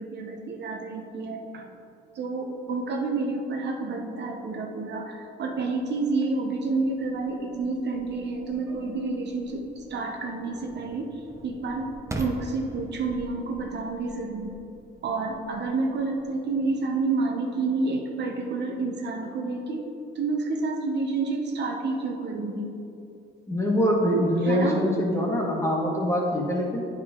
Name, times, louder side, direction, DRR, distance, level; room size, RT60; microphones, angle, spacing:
voice 1, 0.0-1.7 2.1-11.9 12.2-14.5 15.0-19.9 20.1-22.7 24.4-24.8, right 3 dB, 60° right, 2 dB, 0.8 m, -29 dB
sound 1, 6.0-17.0, right 2 dB, 15° right, 0.7 m, -44 dB
voice 2, 23.5-26.9, equal, 15° left, -3 dB, 1.5 m, -24 dB
9.2 x 4.9 x 3.7 m, 2.8 s
cardioid pair, 90°, 20 cm